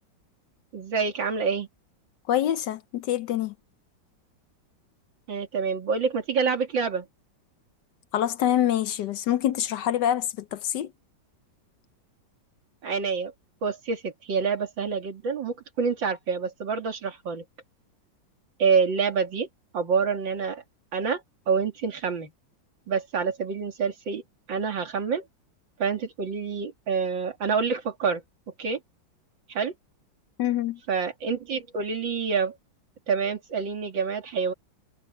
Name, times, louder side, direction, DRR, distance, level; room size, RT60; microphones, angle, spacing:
voice 1, 0.7-1.7 5.3-7.1 12.8-13.3 13.6-17.4 18.6-19.5 19.7-20.6 20.9-21.2 21.5-22.3 22.9-24.2 24.5-25.2 25.8-28.2 28.6-28.8 29.5-29.7 30.9-32.5 33.1-34.5, right 5 dB, 75° right, 3.0 m, -27 dB
voice 2, 2.3-3.5 8.1-10.9 30.4-30.8, left 11 dB, 70° left, 1.2 m, -25 dB
omnidirectional pair, 2.1 m